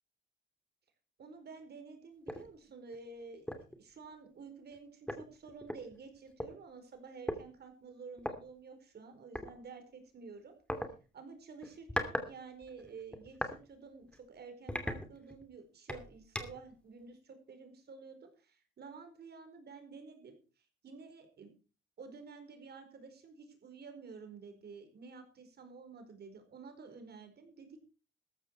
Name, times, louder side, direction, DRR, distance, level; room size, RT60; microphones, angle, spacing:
voice 1, 1.2-10.6 11.1-21.5 22.0-27.8, right 4 dB, 55° right, 7 dB, 4.7 m, -51 dB
sound 1, 2.3-2.5 2.9-3.1 3.5-3.8 4.7-4.8 5.1-6.5 7.3-7.4 8.2-8.4 9.4-9.5 10.7-10.9 11.6-12.3 12.6-13.6 14.0-14.2 14.7-15.5 15.9-16.7, left 1 dB, 5° left, 2.6 m, -38 dB
14.0 x 12.0 x 4.6 m, 0.35 s
cardioid pair, 90°, 20 cm